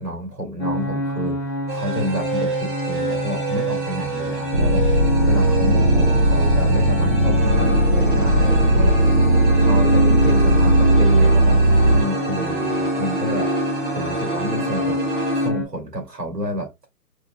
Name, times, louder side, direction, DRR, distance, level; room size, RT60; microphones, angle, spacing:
voice 1, 0.0-1.4 1.7-4.9 5.3-9.0 9.5-11.6 11.9-13.6 13.9-16.7, equal, 75° right, 2.5 m, -29 dB
sound 1, 0.6-15.6, left 1 dB, 20° left, 0.8 m, -27 dB
sound 2, 1.7-15.5, right 3 dB, 30° right, 0.9 m, -28 dB
sound 3, 4.5-12.0, right 1 dB, 50° right, 1.1 m, -17 dB
4.8 x 2.1 x 2.3 m
hypercardioid pair, 165°, 49 cm